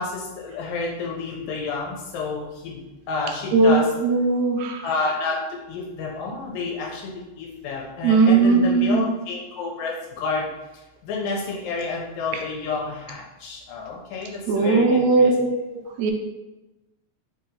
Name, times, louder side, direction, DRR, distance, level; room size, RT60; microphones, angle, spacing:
voice 1, 0.0-2.8 3.1-3.8 4.8-5.4 5.7-10.5 11.0-15.3, left 4 dB, 90° left, -2 dB, 2.2 m, -29 dB
voice 2, 3.5-4.8 8.0-9.1 14.5-15.5 15.7-16.1, right 3 dB, 80° right, 2 dB, 1.7 m, -18 dB
4.8 x 2.8 x 3.8 m, 1.0 s
omnidirectional pair, 3.3 m